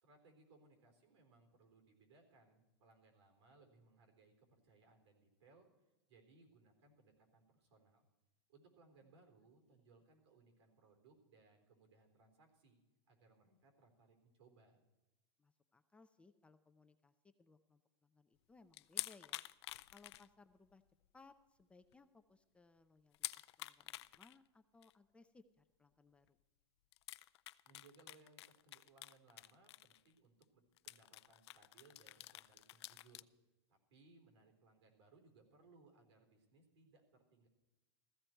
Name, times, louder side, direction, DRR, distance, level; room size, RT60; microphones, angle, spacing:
voice 1, 0.0-5.7 6.1-8.0 8.5-12.8 13.1-14.8 27.6-33.3 33.7-37.5, right 3 dB, 80° right, 4 dB, 4.0 m, -67 dB
voice 2, 15.4-19.4 19.9-20.8 21.1-26.4, left 3 dB, 10° left, 8 dB, 0.4 m, -66 dB
sound 1, 18.7-20.7 21.0-21.1 21.6-21.7 21.9-22.0 23.1-24.4 24.8-24.9 26.3-26.4 26.9-30.1 30.4-30.5 30.8-33.2, left 15 dB, 75° left, 0.5 m, -49 dB
15.5 x 15.0 x 4.5 m, 1.0 s
supercardioid pair, 150°, 14 cm